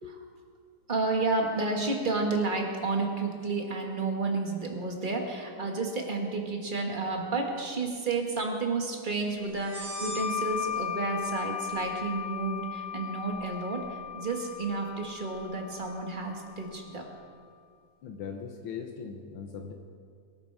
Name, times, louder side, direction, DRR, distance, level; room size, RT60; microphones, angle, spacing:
voice 1, 0.9-17.0, right 3 dB, 35° right, 1 dB, 0.8 m, -31 dB
sound 1, 9.6-16.9, left 8 dB, 50° right, 5.1 m, -37 dB
voice 2, 18.0-19.7, left 6 dB, 70° left, 3 dB, 1.2 m, -39 dB
23.0 x 12.5 x 4.8 m, 2.2 s
omnidirectional pair, 3.6 m